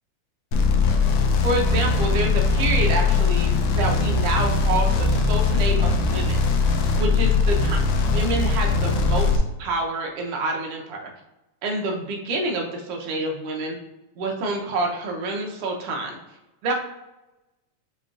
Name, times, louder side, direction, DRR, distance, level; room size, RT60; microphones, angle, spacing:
sound 1, 0.5-9.4, left 4 dB, 85° left, 1.4 m, -20 dB
voice 1, 1.4-6.5 7.0-7.8 8.1-11.1 11.6-13.8 14.2-16.2 16.6-16.7, right 2 dB, 70° right, 1 dB, 1.6 m, -27 dB
6.5 x 3.0 x 2.4 m, 1.0 s
omnidirectional pair, 3.4 m